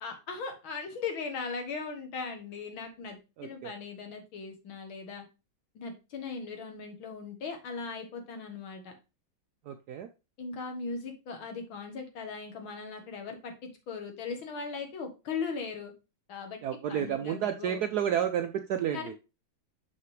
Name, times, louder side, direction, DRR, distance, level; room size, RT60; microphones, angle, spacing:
voice 1, 0.0-5.2 5.8-8.9 10.4-15.9 16.3-16.6 16.9-17.9 18.9-19.1, left 5 dB, 90° left, 5 dB, 2.3 m, -39 dB
voice 2, 3.4-3.7 9.7-10.1 16.6-19.1, right 9 dB, 70° right, 7 dB, 0.9 m, -31 dB
6.3 x 5.7 x 3.2 m, 0.28 s
omnidirectional pair, 2.2 m